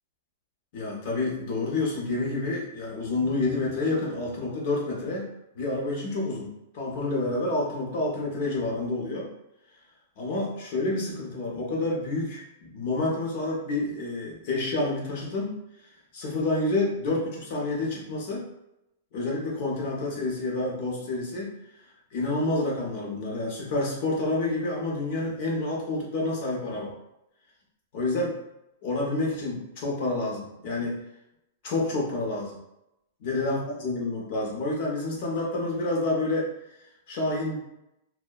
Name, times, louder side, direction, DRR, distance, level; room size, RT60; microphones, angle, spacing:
voice 1, 0.7-5.3 5.6-9.3 10.2-15.5 16.1-18.4 19.1-21.5 22.1-26.9 27.9-28.3 28.8-31.0 31.6-32.6 33.2-36.5 37.1-37.6, left 2 dB, 40° left, -3 dB, 0.7 m, -28 dB
2.7 x 2.1 x 2.2 m, 0.87 s
supercardioid pair, 175°, 0 cm